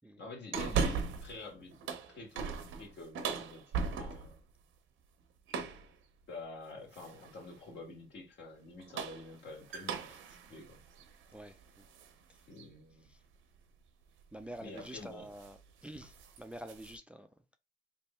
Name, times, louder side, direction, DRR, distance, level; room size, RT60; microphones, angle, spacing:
voice 1, 0.2-1.8 2.1-4.4 6.3-10.8 12.5-13.1 14.6-15.3, left 2 dB, 60° left, 1.7 m, -48 dB
sound 1, 0.5-1.4 1.7-4.4 5.5-5.9 6.9-7.4 8.7-12.1 12.6-12.7 14.2-14.4 14.7-15.0 15.3-15.6 15.9-17.0, right 5 dB, 85° right, 0.8 m, -38 dB
voice 2, 11.3-11.8 12.3-12.4 13.1-13.2 14.3-17.3, right 1 dB, 5° right, 0.4 m, -48 dB
3.4 x 2.5 x 4.3 m
cardioid pair, 90°, 20 cm